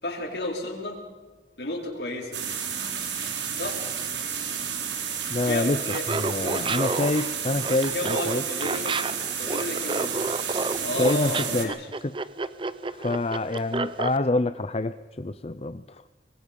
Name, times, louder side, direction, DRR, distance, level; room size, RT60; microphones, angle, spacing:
voice 1, 0.0-1.0 1.6-2.4 3.5-3.9 5.4-6.1 7.9-9.0 9.4-10.2 10.8-11.9, left 1 dB, 70° left, -1 dB, 4.8 m, -32 dB
sound 1, 2.3-11.7, right 7 dB, 90° right, 3.8 m, -31 dB
voice 2, 5.3-5.8 6.2-8.4 11.0-11.7 12.0-12.1 12.9-16.1, left 2 dB, 35° left, 11 dB, 0.6 m, -26 dB
Laughter, 5.8-14.2, right 3 dB, 30° right, 0.8 m, -30 dB
25.0 x 21.0 x 5.4 m, 1.3 s
head